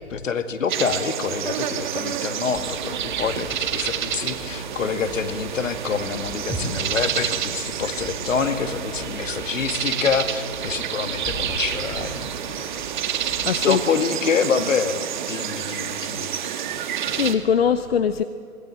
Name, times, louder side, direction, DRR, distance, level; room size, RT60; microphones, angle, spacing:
voice 1, 0.1-12.2 13.6-16.4, left 6 dB, 60° left, 8 dB, 2.2 m, -26 dB
sound 1, 0.7-17.3, right 9 dB, 35° right, 1.6 m, -29 dB
sound 2, 2.5-13.5, left 1 dB, 10° left, 3.5 m, -41 dB
sound 3, 6.5-10.8, right 1 dB, 10° right, 3.4 m, -38 dB
voice 2, 13.5-13.8 17.1-18.2, left 7 dB, 45° left, 10 dB, 1.0 m, -21 dB
25.5 x 22.0 x 7.7 m, 2.6 s
figure-of-eight pair, 140°, 43 cm